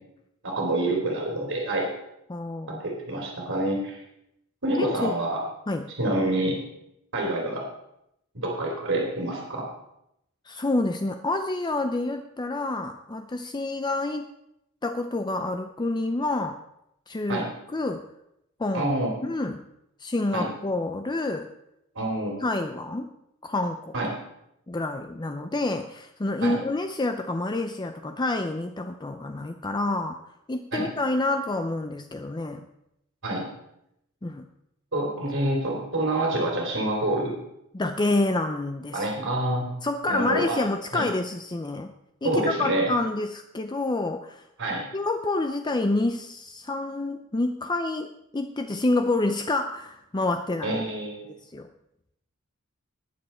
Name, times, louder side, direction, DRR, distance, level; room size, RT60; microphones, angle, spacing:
voice 1, 0.4-1.9 2.7-4.0 4.6-5.4 5.9-6.6 7.1-7.6 8.4-9.7 17.3-17.4 18.7-19.1 20.3-20.4 21.9-22.3 23.9-24.1 26.4-26.5 30.7-30.9 33.2-33.4 34.9-37.3 38.9-39.7 40.1-40.6 40.9-41.0 42.2-42.9 44.6-44.8 50.6-51.3, right 1 dB, 65° right, -2 dB, 3.1 m, -27 dB
voice 2, 2.3-2.8 4.7-5.1 5.7-5.9 10.5-14.3 14.8-16.6 17.1-18.0 18.6-18.9 19.2-19.6 20.0-21.5 22.4-23.1 23.4-23.9 24.7-30.2 30.5-32.6 34.2-34.5 37.7-39.3 39.8-41.9 42.2-44.4 44.9-50.8 51.5-51.7, left 2 dB, 20° left, 6 dB, 0.5 m, -28 dB
19.5 x 7.0 x 4.3 m, 0.81 s
head